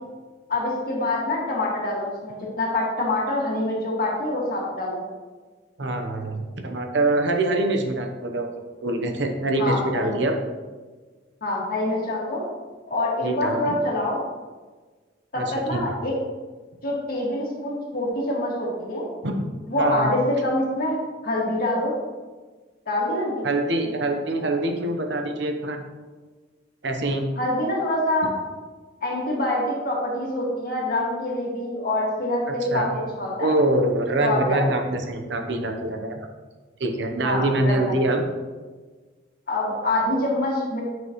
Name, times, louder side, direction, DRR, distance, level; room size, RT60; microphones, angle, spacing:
voice 1, 0.5-5.0 9.6-10.2 11.4-12.4 12.9-14.2 15.3-16.1 16.8-19.1 19.7-21.0 21.2-21.9 22.9-23.5 27.4-28.3 29.0-32.9 33.2-33.5 34.2-34.7 37.2-37.8 39.5-40.8, left 1 dB, 50° left, -3 dB, 2.0 m, -25 dB
voice 2, 5.8-8.5 8.8-10.4 13.2-13.8 15.4-16.0 19.2-19.4 19.8-20.1 23.4-25.8 26.8-27.3 32.5-32.9 33.4-36.3 36.8-38.2, right 2 dB, 65° right, 4 dB, 0.9 m, -24 dB
8.9 x 6.2 x 3.0 m, 1.4 s
head